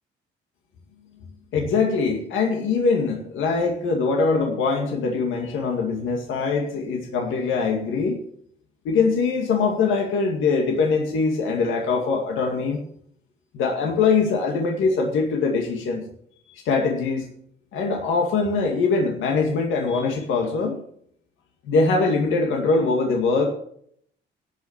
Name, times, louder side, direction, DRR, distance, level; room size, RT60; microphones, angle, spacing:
voice 1, 1.5-8.2 8.8-12.8 13.5-16.0 16.5-17.3 17.7-20.8 21.7-23.5, left 4 dB, 85° left, 1 dB, 2.2 m, -22 dB
17.0 x 6.0 x 7.3 m, 0.67 s
cardioid pair, 90°, 20 cm